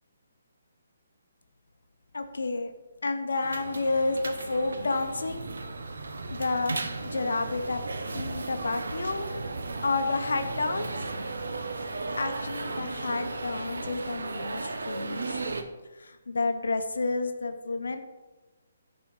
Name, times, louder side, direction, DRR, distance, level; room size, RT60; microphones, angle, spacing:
voice 1, 2.1-2.7 3.0-5.5 6.3-6.7 7.0-7.8 8.1-9.3 9.8-10.9 12.2-15.4 16.0-18.0, left 3 dB, 85° left, 7 dB, 0.8 m, -30 dB
sound 1, 3.4-15.6, right 3 dB, 85° right, 0.8 m, -35 dB
10.5 x 4.2 x 4.6 m, 1.2 s
hypercardioid pair, 160°, 0 cm